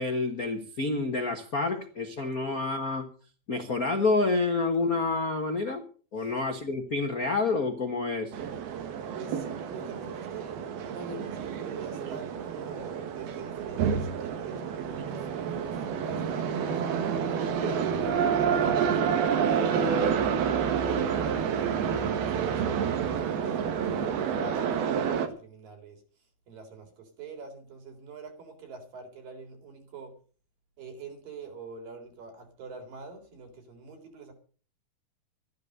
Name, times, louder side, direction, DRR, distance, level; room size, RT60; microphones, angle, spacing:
voice 1, 0.0-3.1 3.5-5.8 6.1-8.3 17.6-17.8, left 3 dB, 90° left, 5 dB, 0.7 m, -28 dB
sound 1, 8.3-25.3, right 7 dB, 85° right, 3.6 m, -29 dB
voice 2, 9.1-17.1 17.6-20.3 20.7-26.0 26.5-30.1 30.8-34.3, right 4 dB, 65° right, 5 dB, 5.4 m, -45 dB
13.5 x 12.0 x 6.6 m, 0.40 s
omnidirectional pair, 4.3 m